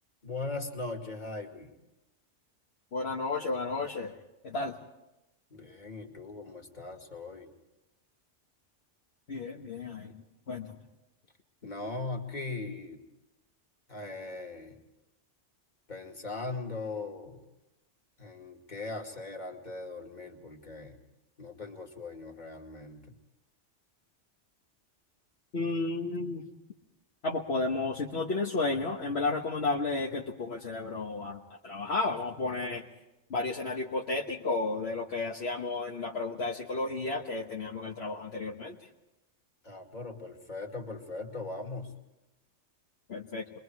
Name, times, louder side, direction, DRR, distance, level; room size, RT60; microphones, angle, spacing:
voice 1, 0.2-1.7 5.5-7.5 11.6-13.0 13.9-14.8 15.9-17.4 18.2-21.0 21.4-23.1 39.6-41.9, left 3 dB, 40° left, 1 dB, 2.5 m, -39 dB
voice 2, 2.9-4.2 4.4-4.8 9.3-10.1 10.5-10.7 25.5-26.5 27.2-32.8 33.3-38.8 43.1-43.4, left 3 dB, 60° left, -1 dB, 1.5 m, -32 dB
29.0 x 22.5 x 4.7 m, 0.97 s
omnidirectional pair, 1.2 m